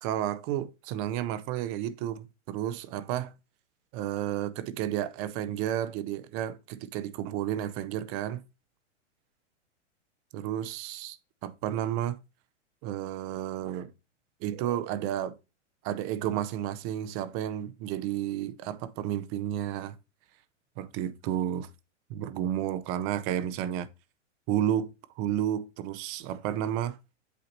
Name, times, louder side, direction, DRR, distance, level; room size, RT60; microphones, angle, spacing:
voice 1, 0.0-3.3 3.9-8.4 10.3-12.2 12.8-13.9 14.4-15.4 15.8-20.0 20.8-21.7 22.1-23.9 24.5-24.9 25.2-27.0, right 11 dB, 35° right, 0.6 m, -32 dB
8.3 x 2.8 x 4.2 m
hypercardioid pair, 120°, 36 cm